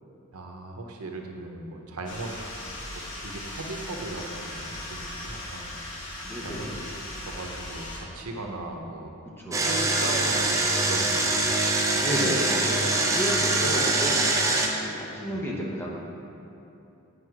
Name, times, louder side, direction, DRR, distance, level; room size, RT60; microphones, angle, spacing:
voice 1, 0.3-2.3 2.9-5.7 6.3-6.7 7.2-9.1 9.4-11.5 15.3-15.8, right 2 dB, 85° right, 2 dB, 0.9 m, -38 dB
sound 1, 2.1-8.0, left 1 dB, 55° left, 1.5 m, -38 dB
voice 2, 6.2-6.8 9.4-9.8 11.9-14.5 14.8-16.0, equal, 10° left, -4 dB, 0.9 m, -32 dB
Engine, 9.5-14.7, right 2 dB, 15° right, 0.5 m, -24 dB
8.1 x 5.3 x 4.7 m, 2.9 s
head